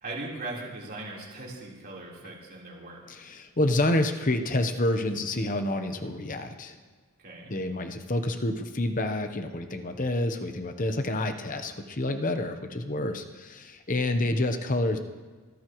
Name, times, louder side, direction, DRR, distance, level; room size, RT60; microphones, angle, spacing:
voice 1, 0.0-3.0 7.2-7.5, right 2 dB, 45° right, -4 dB, 4.0 m, -39 dB
voice 2, 3.1-6.8 7.5-15.0, left 1 dB, 35° left, 7 dB, 0.9 m, -28 dB
23.5 x 15.5 x 3.1 m, 1.4 s
head